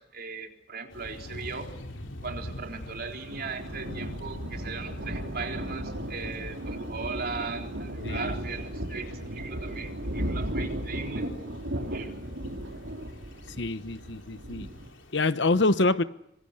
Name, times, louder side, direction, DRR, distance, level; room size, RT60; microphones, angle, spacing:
voice 1, 0.0-1.7 2.2-11.3 11.7-12.2, right 4 dB, 50° right, 3.8 m, -38 dB
sound 1, 0.9-15.3, left 1 dB, 85° left, 3.2 m, -45 dB
Thunder, 2.6-14.9, right 1 dB, 75° right, 4.9 m, -36 dB
voice 2, 8.0-8.3 13.6-14.7 15.1-16.0, left 2 dB, 65° left, 1.0 m, -26 dB
25.5 x 25.5 x 6.6 m
head